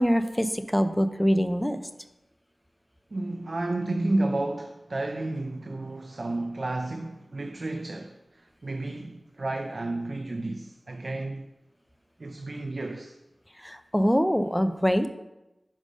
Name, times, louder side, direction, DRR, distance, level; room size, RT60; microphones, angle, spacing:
voice 1, 0.0-1.8 13.6-15.1, equal, 5° left, 0.5 m, -24 dB
voice 2, 3.1-11.5 12.2-13.2, right 2 dB, 60° right, 0.4 m, -31 dB
5.3 x 4.8 x 5.2 m
wide cardioid pair, 50°, 0 cm